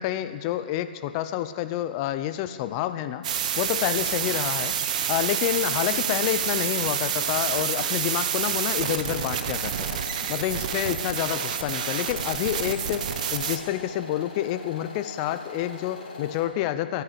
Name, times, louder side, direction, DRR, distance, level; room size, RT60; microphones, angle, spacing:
voice 1, 0.0-3.2 3.6-10.0 10.3-17.0, left 12 dB, 25° left, 11 dB, 0.6 m, -28 dB
sound 1, 3.2-13.6, right 8 dB, 40° right, 1.0 m, -28 dB
sound 2, 9.0-16.5, left 3 dB, 45° left, 4.0 m, -41 dB
12.5 x 10.5 x 9.9 m, 2.1 s
hypercardioid pair, 145°, 6 cm